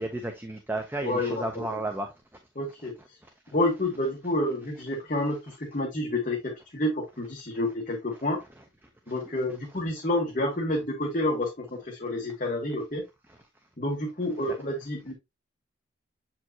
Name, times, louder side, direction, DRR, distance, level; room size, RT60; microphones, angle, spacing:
voice 1, 0.0-2.1 9.2-9.3 14.5-14.6, right 1 dB, 10° right, 0.6 m, -32 dB
voice 2, 1.0-1.8 2.5-2.9 3.5-8.4 9.1-13.0 13.8-15.1, left 1 dB, 40° left, 1.4 m, -29 dB
7.5 x 4.6 x 2.8 m
head